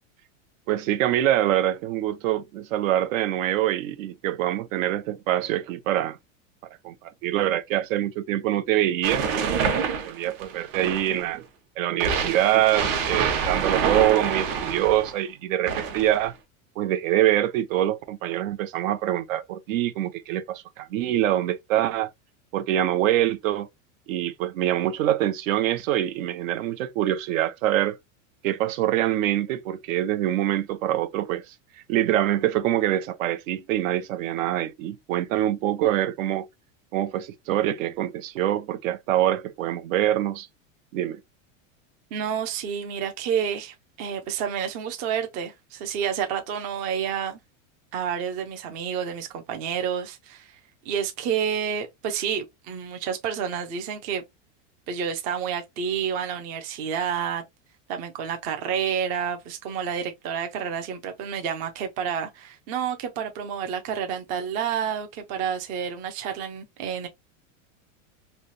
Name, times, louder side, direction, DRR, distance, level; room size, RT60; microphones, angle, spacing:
voice 1, 0.7-6.2 6.8-9.7 10.0-11.4 11.8-16.3 16.8-22.1 22.5-23.7 24.1-28.0 28.4-31.5 31.9-36.5 36.9-40.5 40.9-41.2, right 13 dB, 75° right, 0.7 m, -25 dB
sound 1, 9.0-11.3 12.0-15.1 15.7-16.3, right 6 dB, 50° right, 1.0 m, -26 dB
voice 2, 42.1-47.4 47.9-50.6 50.9-54.2 54.9-57.4 57.9-67.1, right 8 dB, 20° right, 0.3 m, -29 dB
3.2 x 2.7 x 2.6 m
supercardioid pair, 160°, 39 cm